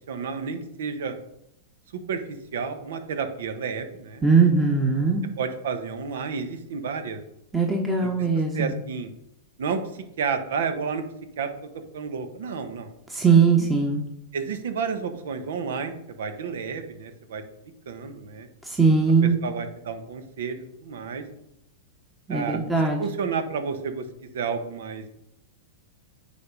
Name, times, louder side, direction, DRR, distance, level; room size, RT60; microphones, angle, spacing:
voice 1, 0.1-1.2 1.9-4.2 5.4-7.2 8.0-8.1 8.5-9.1 9.6-9.8 10.2-11.0 11.4-11.5 11.9-12.9 14.3-17.4 17.9-18.5 19.4-21.2 22.3-22.6 23.0-24.1 24.3-25.1, right 5 dB, 75° right, 8 dB, 1.1 m, -31 dB
voice 2, 4.2-5.2 7.5-8.7 13.1-14.0 18.6-19.4 22.3-23.0, right 5 dB, 5° right, 0 dB, 1.0 m, -20 dB
9.4 x 3.6 x 5.3 m, 0.79 s
hypercardioid pair, 130°, 0 cm